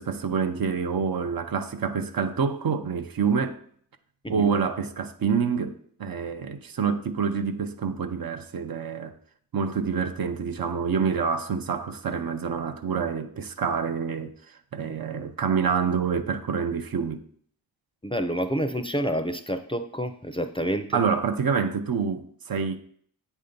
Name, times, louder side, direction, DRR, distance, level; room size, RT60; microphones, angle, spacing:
voice 1, 0.0-3.6 4.3-9.1 9.5-14.3 14.7-17.2 20.9-22.8, right 6 dB, 60° right, 0.6 m, -27 dB
voice 2, 18.0-21.0, equal, 15° left, 0.5 m, -28 dB
7.8 x 2.7 x 5.1 m
cardioid pair, 50°, 40 cm